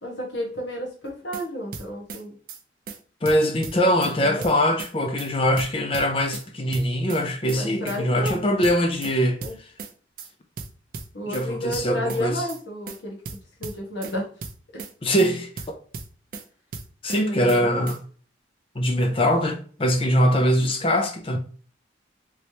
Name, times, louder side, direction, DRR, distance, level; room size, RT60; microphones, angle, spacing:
voice 1, 0.0-2.4 4.2-4.4 7.5-8.4 9.4-9.5 11.1-13.2 13.6-14.3 14.7-14.9 17.1-17.9, equal, 70° left, 1.2 m, -31 dB
sound 1, 1.1-1.4 1.7-2.2 2.5-2.6 2.9-3.0 3.3-4.1 4.4-4.9 5.2-5.3 5.6-6.5 6.7-7.2 7.5-7.6 7.9-8.0 8.3-9.1 9.4-9.9 10.2-10.3 10.6-11.4 11.7-12.2 12.5-12.6 12.9-13.0 13.3-14.1 14.4-14.9 15.2-15.3 15.6-16.4 16.7-17.2 17.5-17.6 17.9-18.0, right 4 dB, 50° right, 0.5 m, -36 dB
voice 2, 3.2-9.4 11.3-12.4 15.0-15.8 17.0-18.0 18.8-21.4, equal, 30° left, 0.4 m, -22 dB
3.2 x 3.1 x 2.8 m
head